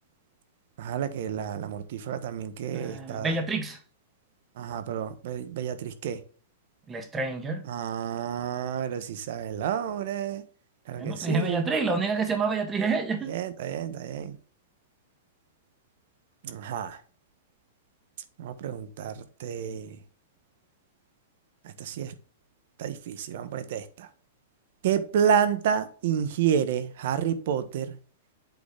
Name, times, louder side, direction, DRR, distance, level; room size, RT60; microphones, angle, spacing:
voice 1, 0.8-3.4 4.6-6.2 7.7-10.4 10.9-11.7 13.3-14.4 16.4-17.0 18.4-20.0 21.6-22.1 22.8-24.1 24.8-28.0, right 8 dB, 65° right, 1.1 m, -30 dB
voice 2, 2.7-3.8 6.9-7.7 10.9-13.3, right 4 dB, 20° right, 1.7 m, -28 dB
8.3 x 4.2 x 3.5 m
hypercardioid pair, 125°, 0 cm